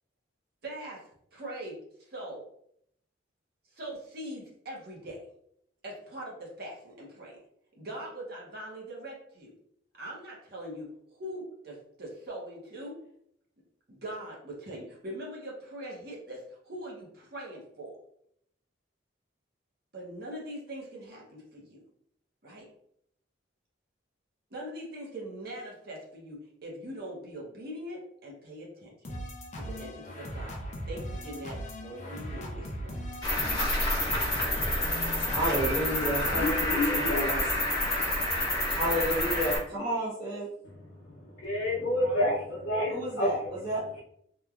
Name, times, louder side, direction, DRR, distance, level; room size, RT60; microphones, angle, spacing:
voice 1, 0.6-1.0 1.3-1.8 2.1-2.4 3.7-5.2 5.8-7.4 7.8-9.5 10.0-13.0 13.9-18.0 19.9-21.8 22.4-22.7 24.5-29.1 29.5-30.5 30.9-33.2, right 1 dB, 50° right, -3 dB, 0.7 m, -42 dB
sound 1, 29.1-37.3, equal, 35° left, 0.5 m, -39 dB
Cricket, 33.2-39.6, left 1 dB, 20° left, 1.0 m, -28 dB
voice 2, 35.3-37.4 38.7-40.5 42.9-43.8, equal, 20° right, -9 dB, 1.1 m, -31 dB
voice 3, 36.4-37.3 40.6-43.3, left 1 dB, 80° left, -7 dB, 0.6 m, -29 dB
3.0 x 2.2 x 2.3 m, 0.70 s
head